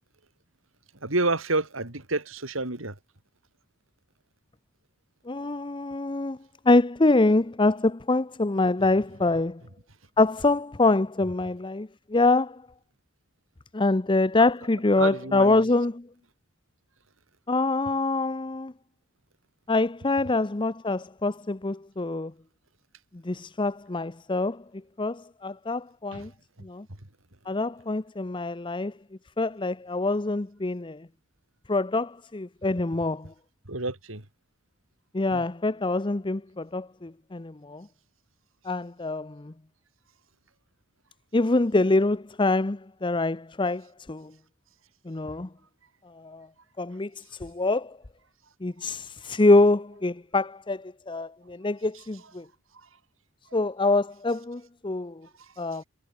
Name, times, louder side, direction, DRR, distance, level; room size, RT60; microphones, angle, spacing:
voice 1, 1.0-3.0 15.0-15.6 26.1-26.3 33.7-34.3 35.3-35.4 51.9-52.0 52.7-52.9 55.4-55.5, right 2 dB, 90° right, 4.0 m, -29 dB
voice 2, 5.3-6.4 6.7-9.6 10.2-12.6 13.7-16.1 17.5-18.7 19.7-22.3 23.2-24.6 25.0-26.3 26.6-26.8 27.5-28.9 29.4-31.1 31.7-33.3 35.1-37.9 38.7-39.5 41.3-44.3 45.1-45.5 46.2-46.5 46.8-48.0 48.6-52.4 53.5-55.2 55.6-55.8, left 2 dB, 25° left, 0.7 m, -25 dB
head